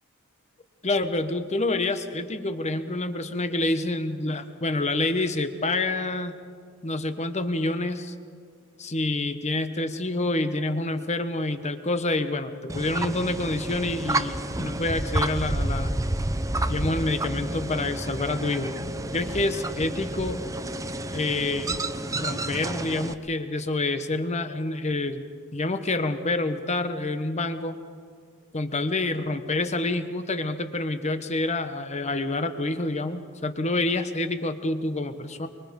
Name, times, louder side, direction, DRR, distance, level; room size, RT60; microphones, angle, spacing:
voice 1, 0.8-6.4 6.8-8.1 8.8-16.0 16.7-18.8 19.1-20.4 21.1-21.7 22.1-27.8 28.5-35.5, left 2 dB, 30° left, 9 dB, 1.1 m, -27 dB
sound 1, 12.7-23.1, right 1 dB, 15° right, 0.7 m, -30 dB
24.5 x 23.5 x 5.4 m, 2.1 s
head